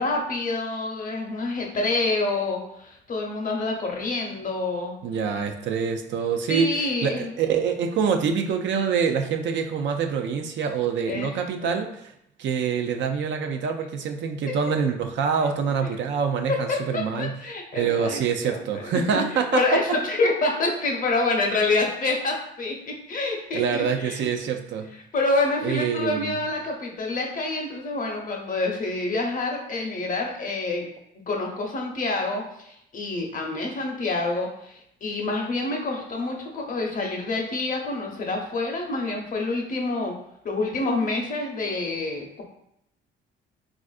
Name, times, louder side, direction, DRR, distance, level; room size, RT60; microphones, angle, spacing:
voice 1, 0.0-4.9 6.5-7.3 11.1-11.3 11.6-11.8 14.5-14.6 16.7-24.3 25.1-30.9 31.3-40.2 40.4-42.4, left 2 dB, 40° left, 1 dB, 0.7 m, -27 dB
voice 2, 5.0-12.1 12.4-17.3 17.7-19.8 23.5-24.9 25.6-26.4, right 6 dB, 70° right, 5 dB, 0.4 m, -25 dB
3.4 x 2.4 x 2.3 m, 0.76 s
cardioid pair, 90°, 20 cm